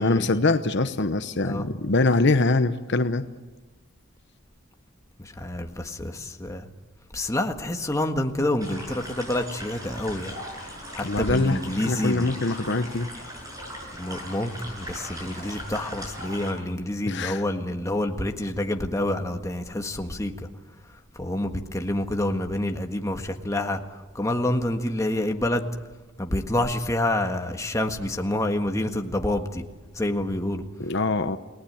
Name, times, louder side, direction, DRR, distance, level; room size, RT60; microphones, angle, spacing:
voice 1, 0.0-3.2 11.0-11.6 11.9-13.1 17.1-17.4 30.8-31.4, left 3 dB, 55° left, 10 dB, 0.9 m, -23 dB
voice 2, 5.2-6.7 7.1-10.4 10.9-12.3 14.0-20.3 21.1-25.7 26.2-29.6 29.9-30.6, left 1 dB, 15° left, 4 dB, 1.6 m, -28 dB
sound 1, 8.6-16.5, equal, 15° right, 7.8 m, -39 dB
29.5 x 19.0 x 8.8 m, 1.2 s
head